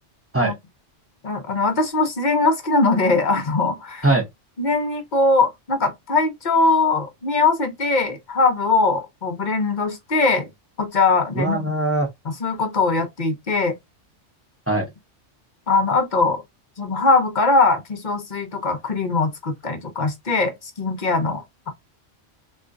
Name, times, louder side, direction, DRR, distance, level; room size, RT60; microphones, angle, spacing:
voice 1, 1.2-4.1 4.6-10.5 10.8-11.7 12.2-13.8 15.7-16.4 16.8-21.7, left 3 dB, 45° left, 0.7 m, -21 dB
voice 2, 11.3-12.1 14.7-14.9, right 2 dB, 15° right, 0.6 m, -20 dB
3.6 x 2.4 x 2.5 m
omnidirectional pair, 1.3 m